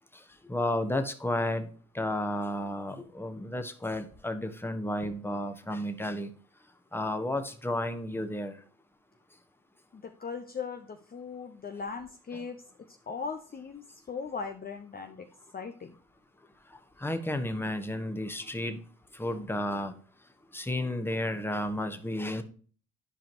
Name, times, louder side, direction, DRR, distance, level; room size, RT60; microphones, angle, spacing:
voice 1, 0.4-1.7 1.9-6.3 6.9-8.6 17.0-18.8 19.1-19.9 20.5-22.4, left 1 dB, 5° left, 7 dB, 1.2 m, -32 dB
voice 2, 9.9-15.3 15.5-16.0, left 5 dB, 30° left, 5 dB, 0.8 m, -39 dB
11.0 x 5.1 x 2.9 m, 0.42 s
cardioid pair, 90°, 30 cm